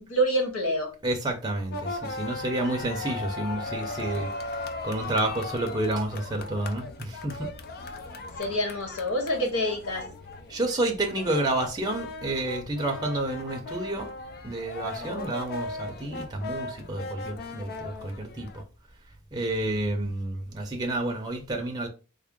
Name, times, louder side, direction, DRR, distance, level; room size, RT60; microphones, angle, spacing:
voice 1, 0.0-0.9 8.4-10.0, equal, 85° left, 1.3 m, -27 dB
voice 2, 1.0-4.3 4.8-7.5 10.5-14.1 14.4-18.6 19.3-21.9, right 1 dB, 20° right, 0.6 m, -30 dB
sound 1, 1.7-18.6, left 3 dB, 45° left, 0.4 m, -38 dB
3.5 x 2.1 x 3.5 m
head